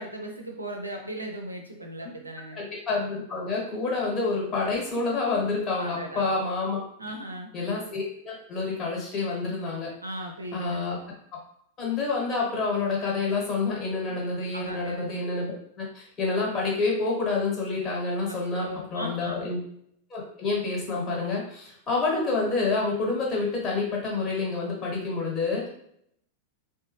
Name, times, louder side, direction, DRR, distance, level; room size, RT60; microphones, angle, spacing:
voice 1, 0.0-2.6 5.8-6.4 7.0-7.5 10.0-10.8 14.1-14.2 14.5-15.0 18.3-19.5, right 1 dB, 80° right, 1 dB, 0.5 m, -37 dB
voice 2, 2.5-6.8 7.5-9.9 10.5-11.0 11.8-19.6 20.1-25.7, left 3 dB, 25° left, -3 dB, 1.4 m, -28 dB
3.7 x 2.2 x 3.1 m, 0.70 s
figure-of-eight pair, 90°, 0 cm